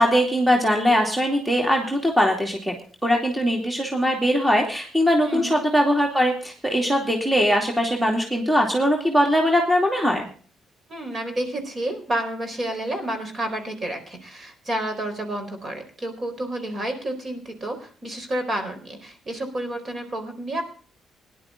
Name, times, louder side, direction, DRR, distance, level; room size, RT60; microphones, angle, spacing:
voice 1, 0.0-2.7 3.0-10.2, equal, 5° right, 2 dB, 2.7 m, -21 dB
voice 2, 10.9-20.6, right 1 dB, 40° right, 6 dB, 4.2 m, -30 dB
18.0 x 11.0 x 3.7 m, 0.41 s
cardioid pair, 90°, 0 cm